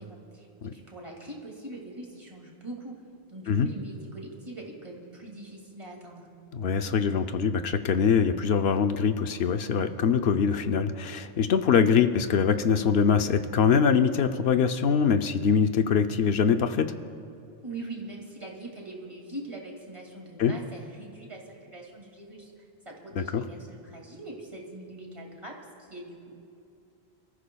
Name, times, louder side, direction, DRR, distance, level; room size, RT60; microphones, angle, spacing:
voice 1, 0.0-3.0 3.3-6.3 17.6-26.4, right 2 dB, 30° right, -1 dB, 2.4 m, -42 dB
voice 2, 6.5-16.9 20.4-20.5 23.2-23.4, left 6 dB, 85° left, 8 dB, 0.9 m, -23 dB
28.0 x 14.5 x 2.3 m, 2.7 s
omnidirectional pair, 1.0 m